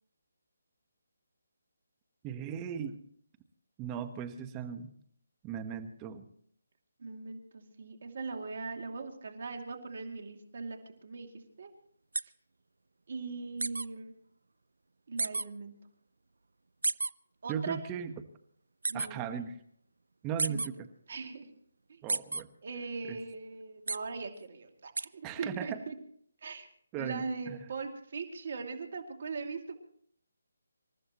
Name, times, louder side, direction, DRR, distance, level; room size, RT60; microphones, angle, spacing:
voice 1, 2.2-3.0 3.8-4.9 5.4-6.2 17.5-18.1 18.9-19.5 20.2-20.9 22.0-22.5 23.1-23.2 25.2-25.8 26.9-27.6, right 8 dB, 20° right, 8 dB, 1.2 m, -38 dB
voice 2, 7.0-11.3 11.6-11.7 13.1-14.1 15.1-15.7 17.4-17.8 18.9-19.4 20.5-20.6 21.1-21.5 21.9-22.0 22.6-26.0 26.4-26.7 27.0-29.8, right 4 dB, 55° right, 4 dB, 2.6 m, -40 dB
sound 1, 12.1-12.2 13.6-13.9 15.2-15.4 16.8-17.1 18.8-19.1 20.4-20.7 22.1-22.4 23.9-24.0 25.0-25.1, right 3 dB, 75° right, 0.5 m, -30 dB
27.0 x 14.0 x 3.0 m, 0.63 s
figure-of-eight pair, 155°, 0 cm